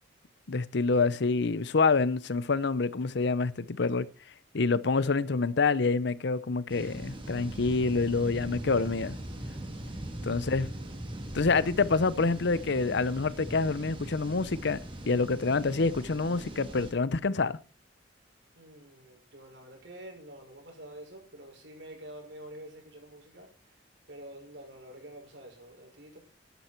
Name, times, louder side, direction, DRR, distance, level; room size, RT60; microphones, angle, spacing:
voice 1, 0.5-4.1 4.5-9.2 10.2-10.7 11.3-14.8 15.1-17.6, left 4 dB, 65° left, 0.7 m, -27 dB
sound 1, 6.7-16.9, right 1 dB, 30° right, 3.0 m, -40 dB
voice 2, 10.2-10.7 18.6-23.5 24.1-26.2, right 1 dB, 70° right, 6.0 m, -48 dB
12.5 x 11.5 x 4.5 m
head